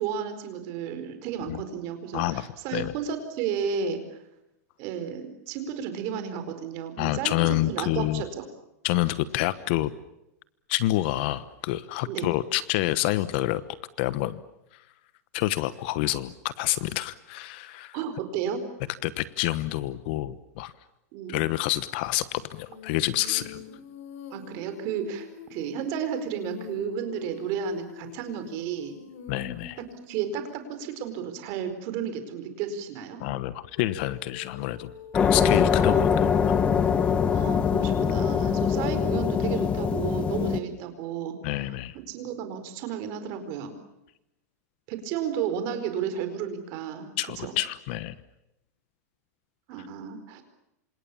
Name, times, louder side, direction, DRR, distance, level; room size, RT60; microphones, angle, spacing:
voice 1, 0.0-4.2 4.8-7.3 7.7-8.4 12.1-12.3 17.9-18.6 21.1-21.4 23.4-23.5 24.3-28.9 30.1-33.2 35.8-36.1 37.3-41.7 42.1-43.7 44.9-47.1 47.4-47.5 49.7-50.4, right 7 dB, 35° right, 9 dB, 4.7 m, -33 dB
voice 2, 2.1-2.9 7.0-8.2 8.8-9.9 10.7-13.6 14.0-14.4 15.3-18.0 19.0-20.7 21.3-23.6 29.3-29.8 33.2-34.9 35.2-36.3 41.4-41.9 47.2-48.1, left 16 dB, 40° left, 16 dB, 1.1 m, -28 dB
Female singing, 22.7-31.6 33.8-38.0, left 6 dB, 60° left, 5.4 m, -46 dB
sound 1, 35.1-40.6, left 7 dB, 15° left, 1.1 m, -23 dB
28.5 x 27.0 x 7.1 m, 0.89 s
supercardioid pair, 170°, 9 cm